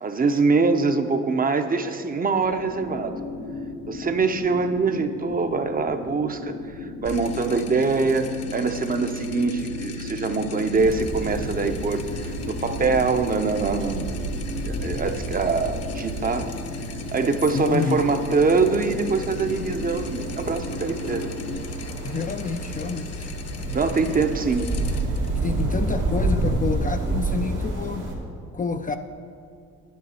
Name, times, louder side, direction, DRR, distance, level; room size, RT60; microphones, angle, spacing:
voice 1, 0.0-3.1 3.9-6.5 6.8-14.1 14.6-16.5 17.1-21.3 23.7-24.7, right 4 dB, 30° right, 7 dB, 0.7 m, -24 dB
sound 1, 2.3-21.6, left 3 dB, 90° left, 1.4 m, -36 dB
sound 2, 7.0-26.3, left 3 dB, 55° left, 0.7 m, -38 dB
sound 3, 10.7-28.1, right 2 dB, 90° right, 2.1 m, -30 dB
voice 2, 17.5-18.0 22.0-23.3 23.9-24.0 25.4-28.1 28.5-29.0, left 5 dB, 30° left, 7 dB, 0.4 m, -28 dB
9.5 x 9.2 x 4.3 m, 2.5 s
cardioid pair, 90°, 30 cm